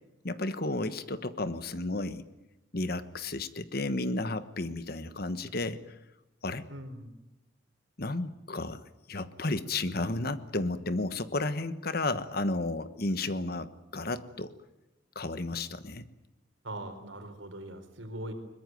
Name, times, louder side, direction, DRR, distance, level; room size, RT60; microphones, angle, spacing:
voice 1, 0.2-2.3 2.7-5.9 6.4-6.7 8.0-8.8 9.1-14.5 15.1-16.1, left 2 dB, 50° left, 12 dB, 1.2 m, -32 dB
voice 2, 6.7-7.1 16.6-18.3, right 1 dB, 80° right, 7 dB, 4.1 m, -41 dB
22.5 x 20.5 x 9.3 m, 0.94 s
head